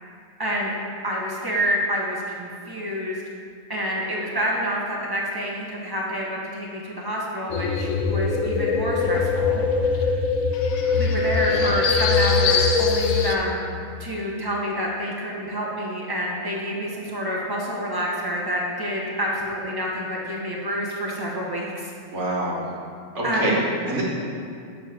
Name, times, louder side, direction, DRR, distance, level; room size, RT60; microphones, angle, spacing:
voice 1, 0.4-0.7 1.0-3.2 3.7-10.2 10.9-13.6 14.0-21.9 23.2-23.7, equal, 15° right, -4 dB, 1.2 m, -28 dB
sound 1, 7.5-13.4, left 4 dB, 90° left, 1.1 m, -22 dB
voice 2, 22.1-22.7 23.1-23.6 23.9-24.0, right 2 dB, 55° right, -4 dB, 1.8 m, -26 dB
8.7 x 4.0 x 6.3 m, 2.3 s
omnidirectional pair, 1.4 m